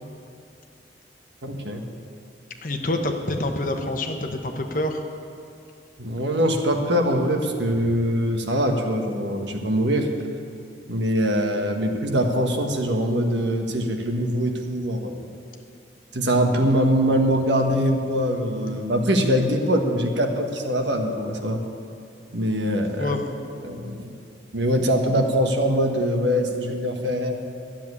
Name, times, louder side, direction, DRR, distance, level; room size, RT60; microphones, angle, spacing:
voice 1, 1.4-1.9 6.0-10.1 10.9-15.3 16.1-21.6 22.3-23.2 23.6-24.2 24.5-27.3, equal, 75° right, 3 dB, 1.4 m, -23 dB
voice 2, 2.6-5.0 19.6-19.7 23.0-23.4, left 1 dB, 45° left, 4 dB, 1.1 m, -27 dB
12.0 x 7.4 x 9.6 m, 2.4 s
head